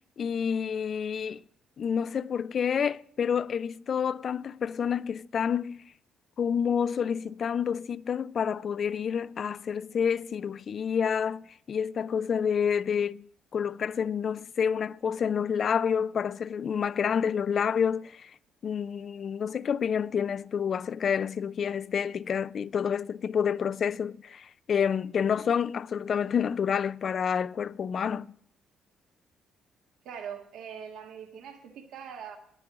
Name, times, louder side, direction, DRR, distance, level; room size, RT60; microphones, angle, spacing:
voice 1, 0.2-1.4 1.8-5.8 6.4-13.3 13.5-18.3 18.6-28.3, left 7 dB, 55° left, 0.3 m, -28 dB
voice 2, 30.0-32.4, right 7 dB, 85° right, 1.6 m, -42 dB
10.0 x 6.9 x 7.9 m
cardioid pair, 90°, 0 cm